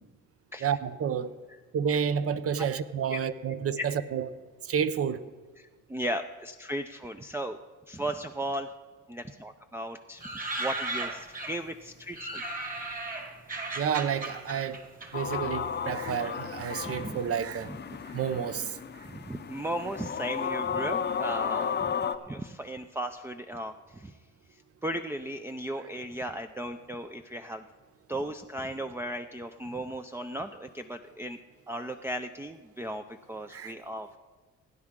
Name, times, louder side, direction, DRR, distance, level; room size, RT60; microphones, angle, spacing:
voice 1, 0.6-1.3 1.7-4.3 4.7-5.2 13.8-14.8 15.1-17.7 18.1-18.7 33.5-33.7, right 7 dB, 50° right, 0.7 m, -30 dB
voice 2, 5.6-7.6 7.9-8.7 9.1-10.2 10.6-12.4 16.8-17.2 17.6-17.8 19.1-21.9 22.3-24.2 24.5-27.6 28.1-31.4 31.7-34.2, right 1 dB, 10° right, 0.4 m, -36 dB
sound 1, 10.2-11.7 12.1-16.0 16.3-17.2 17.8-18.4 18.6-18.7 18.9-21.3 21.5-21.7, right 2 dB, 30° right, 1.8 m, -37 dB
sound 2, 15.1-22.2, left 7 dB, 35° left, 0.6 m, -33 dB
17.0 x 9.5 x 3.7 m
cardioid pair, 90°, 30 cm